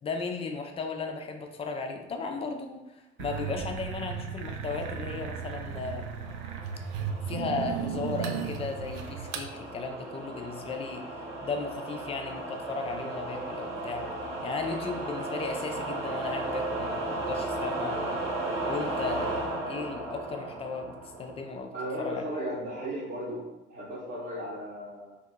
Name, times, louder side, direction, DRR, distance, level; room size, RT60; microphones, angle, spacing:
voice 1, 0.0-6.0 7.3-11.0 11.4-14.0 14.4-18.0 18.7-20.9 21.2-21.7 22.0-22.2, left 4 dB, 20° left, 4 dB, 0.3 m, -35 dB
sound 1, 3.2-9.5, right 7 dB, 50° right, 0.4 m, -35 dB
sound 2, 5.2-21.6, right 2 dB, 75° right, 0.7 m, -36 dB
voice 2, 21.7-23.4 23.7-25.2, equal, 30° right, -7 dB, 0.8 m, -35 dB
2.6 x 2.6 x 3.5 m, 1.0 s
figure-of-eight pair, 60°, 35 cm